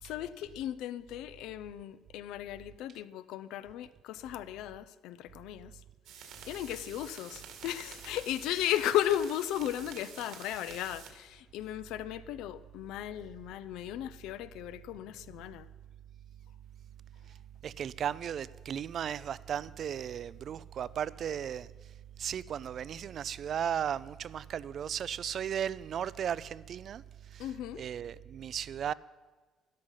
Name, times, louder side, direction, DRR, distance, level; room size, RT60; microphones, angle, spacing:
voice 1, 0.0-5.8 6.1-15.7 27.4-27.8, left 12 dB, 80° left, 0.5 m, -36 dB
sound 1, 6.0-11.1, right 7 dB, 75° right, 1.9 m, -49 dB
voice 2, 17.6-21.7 22.2-27.0 27.3-27.4 27.8-28.9, right 9 dB, 45° right, 0.3 m, -35 dB
13.0 x 11.5 x 5.6 m
cardioid pair, 155°, 0 cm